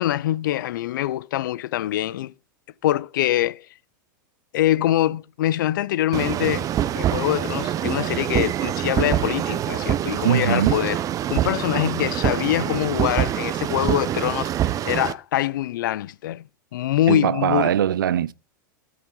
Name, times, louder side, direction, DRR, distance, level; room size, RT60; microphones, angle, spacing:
voice 1, 0.0-2.3 2.8-3.7 4.5-6.7 6.9-11.0 11.3-14.5 14.8-16.4 16.7-17.7, left 13 dB, 75° left, 0.4 m, -24 dB
sound 1, 6.1-15.1, right 11 dB, 35° right, 0.6 m, -25 dB
voice 2, 10.2-10.8 17.1-18.3, right 10 dB, 90° right, 0.5 m, -21 dB
13.0 x 6.1 x 3.8 m
hypercardioid pair, 110°, 11 cm